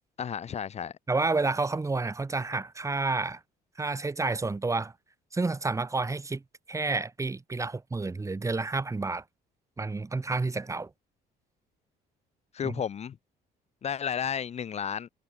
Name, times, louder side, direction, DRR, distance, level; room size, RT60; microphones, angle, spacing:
voice 1, 0.2-1.0 12.5-13.2 13.8-15.1, left 8 dB, 40° left, 1.1 m, -32 dB
voice 2, 1.1-3.4 3.8-4.9 5.3-6.4 6.7-9.2 9.8-10.9 12.6-12.7, right 3 dB, 20° right, 2.8 m, -30 dB
cardioid pair, 110°, 17 cm